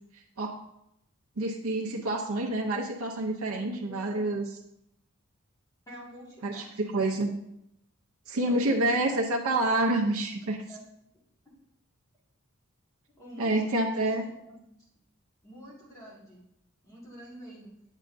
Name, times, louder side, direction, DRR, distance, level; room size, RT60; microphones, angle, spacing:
voice 1, 1.4-4.4 6.4-6.6 6.9-7.3 8.3-10.6 13.4-14.2, right 2 dB, 70° right, 0 dB, 0.7 m, -27 dB
voice 2, 3.5-4.2 5.9-7.1 8.5-9.5 10.6-10.8 11.5-11.6 13.2-13.9 14.2-14.6 15.4-16.4 16.8-17.7, right 1 dB, 15° left, -6 dB, 1.7 m, -47 dB
8.2 x 6.5 x 2.6 m, 0.80 s
head